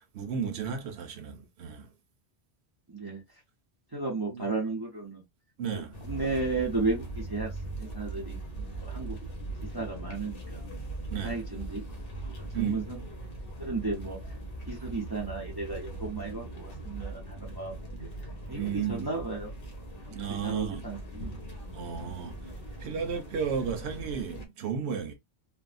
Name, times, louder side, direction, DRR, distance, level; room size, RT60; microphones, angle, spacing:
voice 1, 0.0-1.9 4.3-4.4 5.6-6.0 11.1-11.4 12.5-12.8 18.5-19.1 20.1-20.9 21.7-22.4 22.8-25.1, right 7 dB, 80° right, 1.0 m, -33 dB
voice 2, 2.9-3.2 3.9-5.2 6.0-7.5 7.8-9.2 9.7-10.7 11.2-11.8 12.4-13.0 13.6-14.2 14.7-18.0 18.5-19.5 20.0-20.2 20.4-21.3, right 3 dB, 25° right, 0.7 m, -34 dB
sound 1, 5.9-24.5, right 2 dB, 60° left, 1.1 m, -40 dB
3.4 x 2.0 x 2.4 m
omnidirectional pair, 1.1 m